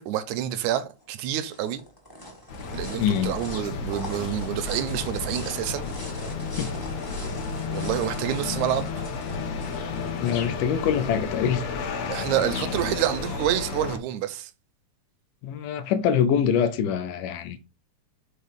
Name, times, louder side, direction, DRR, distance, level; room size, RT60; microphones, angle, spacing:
voice 1, 0.0-1.8 2.7-5.9 7.7-8.9 12.1-14.5, right 11 dB, 80° right, 1.9 m, -28 dB
sound 1, 1.0-11.9, equal, 20° left, 0.6 m, -43 dB
sound 2, 2.5-14.0, left 5 dB, 65° left, 1.9 m, -32 dB
voice 2, 3.0-3.3 6.6-6.7 10.2-11.6 15.4-17.6, left 8 dB, 85° left, 2.3 m, -24 dB
5.6 x 4.2 x 5.2 m
omnidirectional pair, 3.7 m